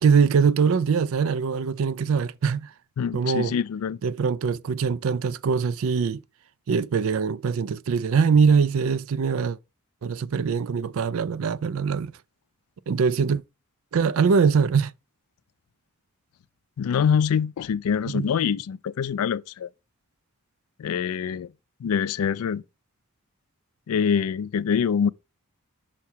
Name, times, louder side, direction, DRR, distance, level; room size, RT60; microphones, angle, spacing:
voice 1, 0.0-2.7 3.1-3.6 4.0-6.2 6.7-9.6 10.0-12.1 12.9-13.4 13.9-14.9 18.1-18.3, right 5 dB, 65° right, 0.4 m, -22 dB
voice 2, 3.0-4.0 16.8-19.7 20.8-21.5 21.8-22.6 23.9-25.1, left 7 dB, 80° left, 0.4 m, -25 dB
5.9 x 4.7 x 4.4 m
head